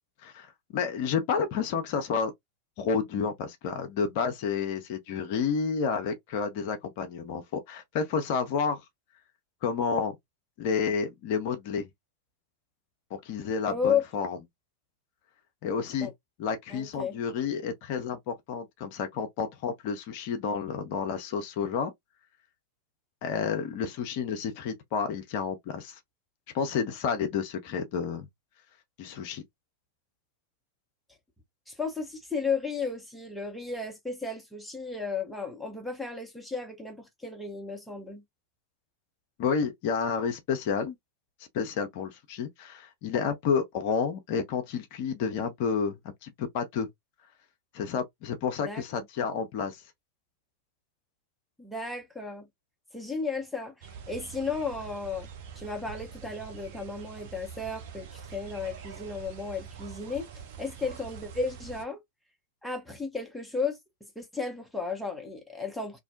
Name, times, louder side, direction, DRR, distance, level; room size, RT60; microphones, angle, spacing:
voice 1, 0.2-2.3 2.8-8.8 9.6-10.1 10.6-11.9 13.2-14.4 15.6-16.1 16.4-21.9 23.2-26.0 26.5-28.3 29.0-29.4 39.4-41.0 41.5-46.0 46.2-46.9 47.7-49.8, left 6 dB, 45° left, 0.5 m, -30 dB
voice 2, 13.6-14.0 16.0-16.1 16.7-17.2 31.7-38.2 48.6-48.8 51.6-52.5 52.9-55.3 55.6-60.3 60.6-62.0 62.6-63.8 64.2-66.0, left 5 dB, 5° left, 0.7 m, -34 dB
sound 1, 53.8-61.8, right 7 dB, 50° right, 0.6 m, -45 dB
2.5 x 2.1 x 2.5 m
figure-of-eight pair, 90°, 0 cm